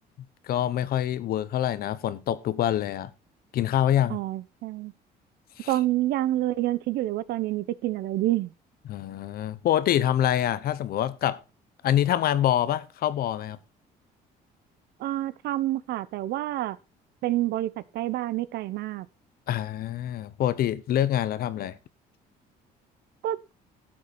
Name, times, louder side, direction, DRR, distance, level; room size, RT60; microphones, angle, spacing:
voice 1, 0.4-3.1 3.5-4.2 5.6-5.7 8.9-11.4 11.8-13.6 19.5-21.8, left 11 dB, 65° left, 1.0 m, -25 dB
voice 2, 4.1-4.9 5.7-8.5 15.0-16.8 17.2-19.1 23.2-23.4, right 15 dB, 75° right, 0.8 m, -28 dB
12.5 x 7.9 x 4.3 m
cardioid pair, 110°, 17 cm